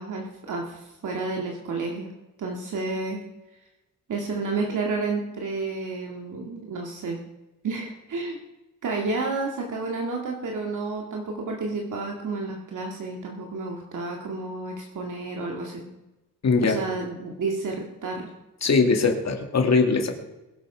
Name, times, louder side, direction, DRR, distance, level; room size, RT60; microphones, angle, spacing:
voice 1, 0.0-2.1 2.4-3.2 4.1-7.2 7.6-8.4 8.8-15.8 16.6-18.3, right 3 dB, 65° right, 0 dB, 2.2 m, -31 dB
voice 2, 16.4-16.8 18.6-20.1, left 4 dB, 55° left, 3 dB, 2.5 m, -21 dB
22.5 x 7.5 x 5.1 m, 1.0 s
cardioid pair, 90°, 33 cm